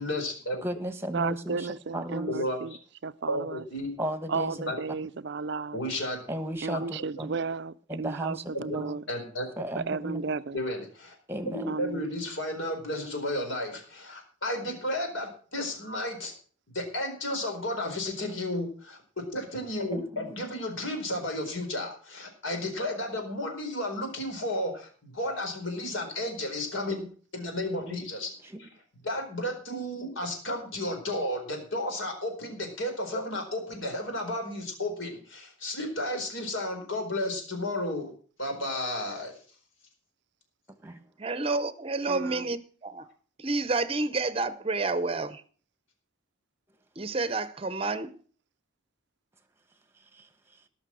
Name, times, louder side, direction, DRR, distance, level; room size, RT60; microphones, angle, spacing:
voice 1, 0.0-0.6 2.3-2.8 3.3-3.9 4.7-4.8 5.7-6.2 7.2-7.3 8.5-8.8 9.1-9.5 10.5-11.1 11.5-16.3 16.7-27.1 27.3-28.3 28.6-28.7 29.0-38.1 38.4-39.3, left 1 dB, 70° left, 4.5 m, -33 dB
voice 2, 0.6-1.7 1.9-2.3 4.0-4.6 6.3-7.3 7.9-9.0 9.6-10.3 11.3-11.7 19.9-20.4 27.7-28.1 28.4-28.6 40.8-41.0 50.1-50.3, equal, 10° right, 1.2 m, -35 dB
voice 3, 1.1-2.7 3.0-3.6 4.3-5.8 6.6-9.0 9.9-10.6 11.7-12.0 42.1-42.5, right 4 dB, 55° right, 0.5 m, -33 dB
voice 4, 41.2-43.1 43.4-45.4 47.0-48.2, right 3 dB, 25° right, 0.8 m, -29 dB
18.0 x 6.2 x 6.2 m
head